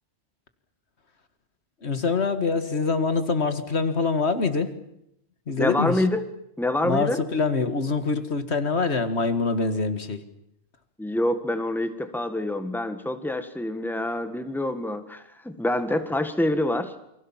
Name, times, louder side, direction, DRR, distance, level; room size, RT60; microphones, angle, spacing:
voice 1, 1.8-4.7 5.5-6.0 6.8-10.2, left 4 dB, 80° left, 10 dB, 2.2 m, -25 dB
voice 2, 5.6-6.2 6.6-7.2 11.0-16.9, left 1 dB, ahead, 9 dB, 1.7 m, -26 dB
28.5 x 24.5 x 7.4 m, 0.79 s
omnidirectional pair, 1.1 m